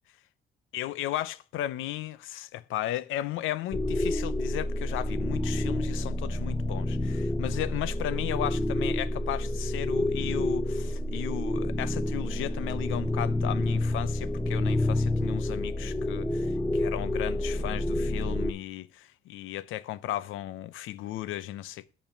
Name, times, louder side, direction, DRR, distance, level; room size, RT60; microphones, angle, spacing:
voice 1, 0.7-21.9, left 13 dB, 90° left, 0.6 m, -35 dB
sound 1, 3.7-18.5, left 1 dB, 5° left, 0.6 m, -29 dB
8.7 x 5.7 x 7.2 m
cardioid pair, 90°, 20 cm